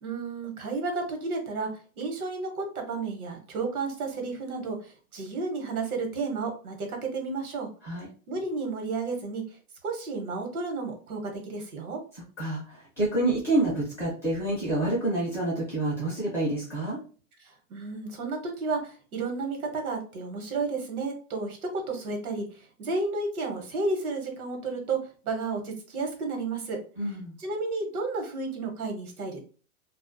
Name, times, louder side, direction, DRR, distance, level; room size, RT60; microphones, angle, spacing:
voice 1, 0.0-1.7 2.0-4.8 5.1-7.7 8.3-9.4 9.8-12.0 17.7-21.6 21.9-22.5 22.8-25.0 25.2-26.8 27.4-29.4, right 3 dB, 85° right, 3 dB, 1.0 m, -32 dB
voice 2, 12.1-17.0 27.0-27.3, right 2 dB, 5° left, -9 dB, 0.4 m, -28 dB
2.3 x 2.2 x 2.5 m, 0.39 s
hypercardioid pair, 145°, 43 cm